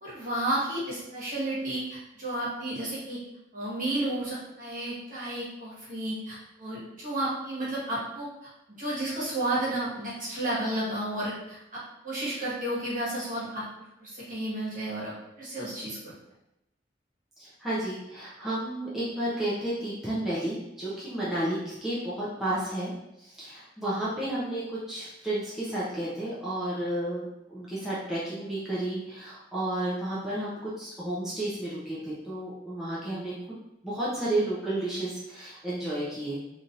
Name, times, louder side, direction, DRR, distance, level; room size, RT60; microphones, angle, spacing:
voice 1, 0.0-3.2 3.5-8.5 8.8-13.6 14.0-16.1, right 1 dB, 45° right, -8 dB, 1.4 m, -32 dB
voice 2, 17.4-22.9 23.2-33.3 33.8-36.4, right 1 dB, ahead, -9 dB, 0.6 m, -32 dB
3.3 x 2.8 x 2.5 m, 0.89 s
head